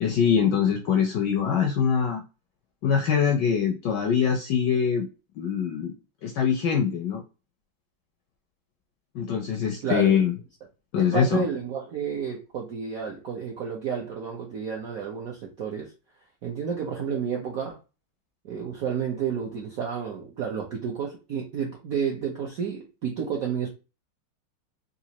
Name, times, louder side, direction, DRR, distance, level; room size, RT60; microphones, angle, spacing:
voice 1, 0.0-2.2 2.8-5.1 5.4-5.9 6.2-7.2 9.1-10.4 10.9-11.4, left 7 dB, 75° left, 1.0 m, -23 dB
voice 2, 9.8-10.2 11.0-15.9 16.4-17.8 18.4-23.7, right 7 dB, 70° right, 0.8 m, -31 dB
4.0 x 2.5 x 2.8 m
omnidirectional pair, 2.3 m